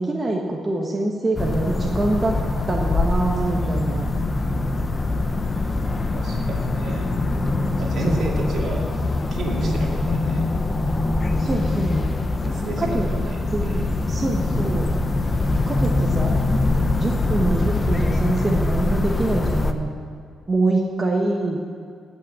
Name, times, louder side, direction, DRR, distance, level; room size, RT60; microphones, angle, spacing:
voice 1, 0.0-2.4 2.7-4.1 8.0-8.3 9.6-9.9 11.4-12.0 12.8-13.1 13.5-14.9 15.7-16.4 17.0-19.9 20.5-21.6, right 2 dB, 20° right, -1 dB, 1.1 m, -24 dB
sound 1, 1.4-19.7, left 2 dB, 20° left, 0.7 m, -23 dB
voice 2, 6.1-7.1 7.8-8.9 9.3-10.5 12.4-13.9, right 2 dB, 55° right, -1 dB, 2.5 m, -31 dB
15.5 x 6.1 x 8.3 m, 2.2 s
cardioid pair, 145°, 0 cm